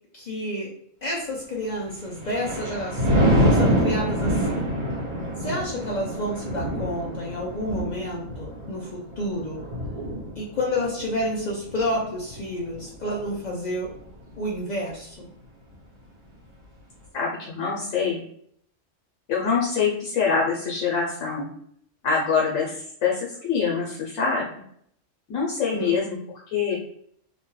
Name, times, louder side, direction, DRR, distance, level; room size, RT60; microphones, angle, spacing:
voice 1, 0.1-0.7 1.0-4.7 5.4-9.6 10.4-13.9 14.4-15.3 25.7-25.9, left 1 dB, 55° left, -3 dB, 0.5 m, -30 dB
Thunder, 1.9-13.4 13.8-14.2, equal, 60° right, 1.5 m, -26 dB
voice 2, 17.1-18.2 19.3-21.5 22.0-23.1 23.4-24.5 25.3-26.2 26.5-26.8, left 5 dB, 90° left, -3 dB, 1.1 m, -24 dB
2.9 x 2.2 x 3.1 m, 0.66 s
omnidirectional pair, 1.3 m